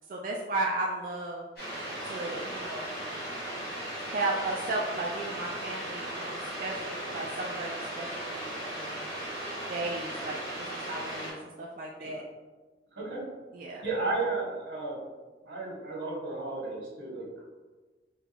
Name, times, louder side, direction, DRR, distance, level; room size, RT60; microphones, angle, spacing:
voice 1, 0.1-1.4 2.0-2.9 4.1-9.0 9.7-12.2 13.5-13.8, right 2 dB, 45° right, -3 dB, 0.3 m, -35 dB
sound 1, 1.6-11.3, right 1 dB, 60° left, 1.3 m, -37 dB
voice 2, 12.9-13.2 13.8-15.0 15.4-17.4, right 3 dB, 85° right, -5 dB, 1.3 m, -33 dB
3.9 x 2.3 x 2.8 m, 1.3 s
head